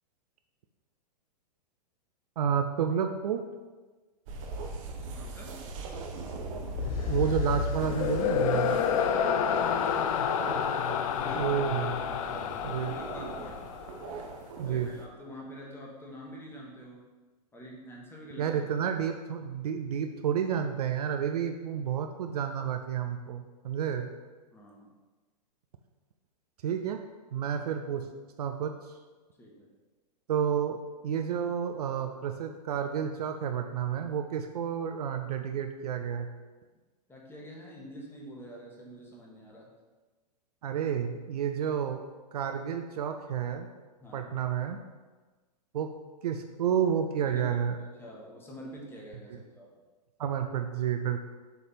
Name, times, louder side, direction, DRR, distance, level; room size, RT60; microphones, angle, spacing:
voice 1, 2.4-3.4 7.1-8.8 11.3-11.9 12.6-12.9 14.6-14.9 18.4-24.1 26.6-27.0 27.3-28.1 28.4-28.7 30.3-36.3 40.6-42.0 42.3-43.7 44.1-44.8 45.7-45.9 46.2-47.8 50.2-51.2, right 8 dB, 65° right, 6 dB, 0.5 m, -30 dB
sound 1, 4.3-15.1, right 3 dB, 50° right, 0.9 m, -40 dB
voice 2, 5.1-5.6 9.5-9.9 11.1-11.6 12.8-13.6 14.6-17.0 17.5-18.6 24.5-24.9 29.4-29.7 37.1-39.7 44.0-44.3 47.3-47.6 48.0-49.7, equal, 10° left, -3 dB, 1.4 m, -46 dB
sound 2, 6.7-14.1, left 7 dB, 55° left, 0.5 m, -29 dB
6.7 x 3.3 x 4.3 m, 1.3 s
hypercardioid pair, 105°, 21 cm